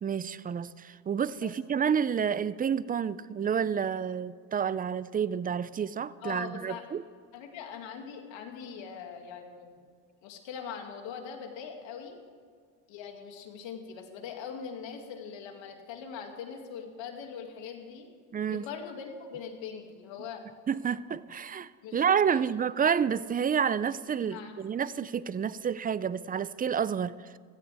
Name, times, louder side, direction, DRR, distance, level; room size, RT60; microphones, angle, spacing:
voice 1, 0.0-7.0 18.3-18.6 20.7-27.4, right 7 dB, 20° right, 0.3 m, -29 dB
voice 2, 6.2-6.8 7.3-9.8 10.2-12.2 12.9-18.1 18.5-20.4 21.8-22.5 24.2-24.6, left 7 dB, 70° left, 2.4 m, -42 dB
16.0 x 15.5 x 3.5 m
supercardioid pair, 90°, 47 cm